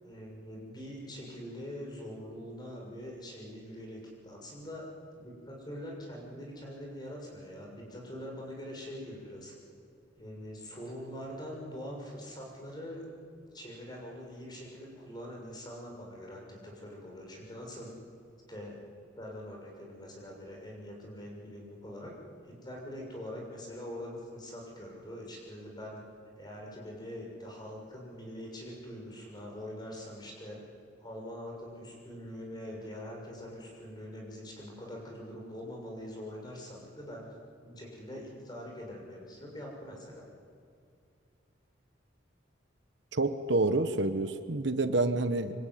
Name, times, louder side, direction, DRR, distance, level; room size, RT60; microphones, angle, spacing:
voice 1, 0.0-4.8 5.2-9.5 10.2-13.1 13.5-17.9 18.5-18.8 19.1-22.1 22.4-26.0 26.4-30.6 31.0-37.3 37.6-40.2, equal, 20° left, -1 dB, 6.7 m, -43 dB
voice 2, 43.1-45.5, right 2 dB, 70° right, 9 dB, 1.2 m, -28 dB
25.5 x 25.0 x 9.5 m, 2.3 s
head